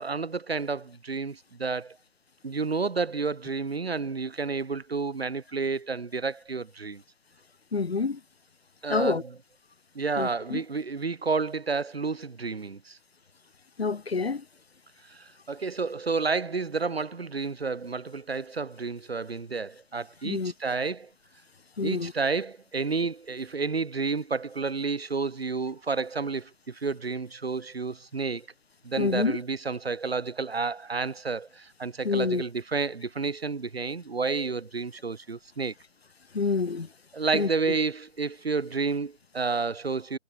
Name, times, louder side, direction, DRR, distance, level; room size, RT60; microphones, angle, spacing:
voice 1, 0.0-2.0 2.4-7.0 8.8-9.3 9.9-13.0 15.1-21.1 21.8-28.5 28.8-35.7 37.1-40.2, right 4 dB, 50° right, 6.1 m, -30 dB
voice 2, 7.7-8.2 8.9-9.2 10.2-10.6 13.8-14.4 20.2-20.5 21.8-22.1 29.0-29.3 32.0-32.4 36.3-36.9 37.3-37.5, left 4 dB, 55° left, 3.7 m, -27 dB
figure-of-eight pair, 165°, 38 cm